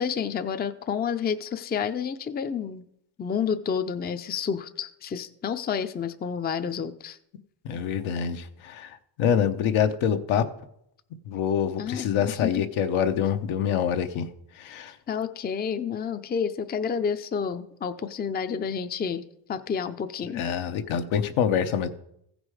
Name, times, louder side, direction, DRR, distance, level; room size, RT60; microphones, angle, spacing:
voice 1, 0.0-2.9 3.2-7.2 11.8-12.6 15.1-19.2 19.5-20.4, left 7 dB, 20° left, 9 dB, 0.5 m, -30 dB
voice 2, 7.6-10.4 11.3-14.3 14.6-14.9 20.3-21.9, left 8 dB, 75° left, 7 dB, 0.9 m, -26 dB
15.0 x 5.2 x 4.8 m, 0.75 s
cardioid pair, 85°, 48 cm